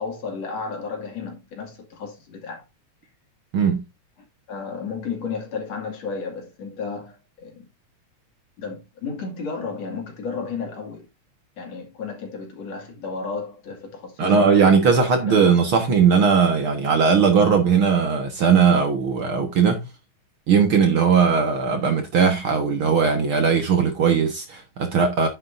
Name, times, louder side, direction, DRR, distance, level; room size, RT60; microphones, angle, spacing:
voice 1, 0.0-2.6 4.5-7.7 8.6-11.1 11.6-15.4, left 5 dB, 60° left, 3.4 m, -33 dB
voice 2, 14.2-19.8 20.5-25.3, right 6 dB, 55° right, 1.9 m, -18 dB
9.7 x 8.4 x 2.6 m
omnidirectional pair, 3.4 m